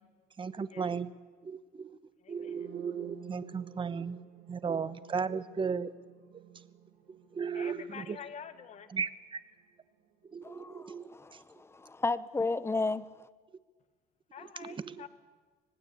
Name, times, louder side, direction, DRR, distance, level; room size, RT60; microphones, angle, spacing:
voice 1, 0.4-1.1 1.4-2.0 2.3-4.2 4.5-5.9 6.3-6.6 7.1-8.2 8.9-9.4 10.3-11.4 14.6-15.1, right 6 dB, 30° right, 1.1 m, -36 dB
voice 2, 2.2-2.7 7.5-8.9 14.3-15.1, left 7 dB, 45° left, 1.9 m, -47 dB
sound 1, 2.4-10.3, right 11 dB, 80° right, 4.0 m, -53 dB
voice 3, 10.4-13.0, left 3 dB, 15° left, 0.9 m, -33 dB
25.5 x 19.5 x 8.7 m
cardioid pair, 110°, 17 cm